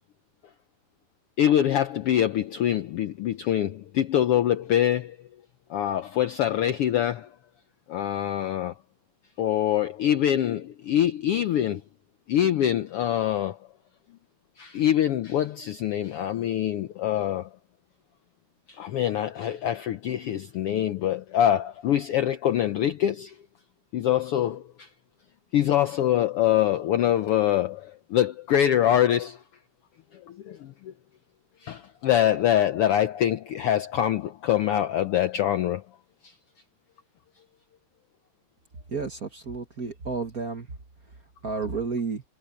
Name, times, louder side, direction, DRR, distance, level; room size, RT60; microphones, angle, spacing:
voice 1, 1.4-5.2 5.7-7.3 7.9-8.7 9.4-11.8 12.3-13.6 14.6-17.5 18.7-23.4 23.9-24.9 25.5-29.4 30.1-30.9 31.6-35.8 36.2-36.3, left 11 dB, 75° left, 1.3 m, -24 dB
voice 2, 38.9-40.7 41.4-42.2, right 4 dB, 40° right, 1.5 m, -31 dB
omnidirectional pair, 3.5 m